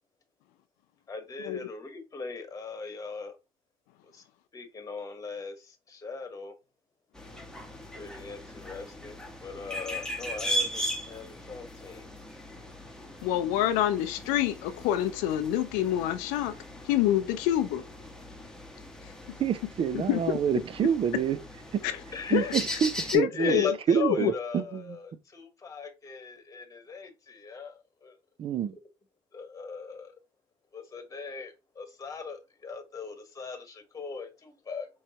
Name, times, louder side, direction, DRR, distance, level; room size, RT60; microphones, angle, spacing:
voice 1, 1.1-3.3 4.1-4.2 4.5-6.5 7.9-12.1 22.1-22.6 23.3-28.2 29.3-30.1 30.7-34.9, left 4 dB, 25° left, 1.2 m, -39 dB
sound 1, 7.1-23.2, equal, 5° left, 1.0 m, -38 dB
voice 2, 13.2-16.5 16.9-17.8 19.9-20.4 21.8-21.9 22.3-22.5 23.1-23.7 24.0-24.3, left 12 dB, 80° left, 0.5 m, -26 dB
voice 3, 19.4-21.4 21.7-21.8 22.3-25.0 28.4-28.8, right 8 dB, 40° right, 0.5 m, -27 dB
4.7 x 3.1 x 2.8 m
supercardioid pair, 95°, 14 cm